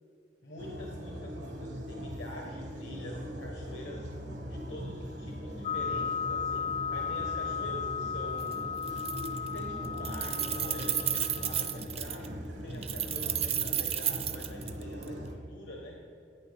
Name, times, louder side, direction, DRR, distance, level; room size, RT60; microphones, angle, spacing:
voice 1, 0.4-4.1 4.5-8.8 9.4-12.3 12.6-16.0, left 1 dB, 80° left, -1 dB, 1.1 m, -45 dB
sound 1, 0.6-15.3, equal, 75° right, 1.3 m, -40 dB
sound 2, 5.6-11.8, left 6 dB, 35° left, 0.4 m, -35 dB
Keys jangling, 8.4-8.5 8.8-9.6 9.8-12.3 12.8-15.1, right 9 dB, 35° right, 0.5 m, -32 dB
10.5 x 9.1 x 3.4 m, 2.8 s
head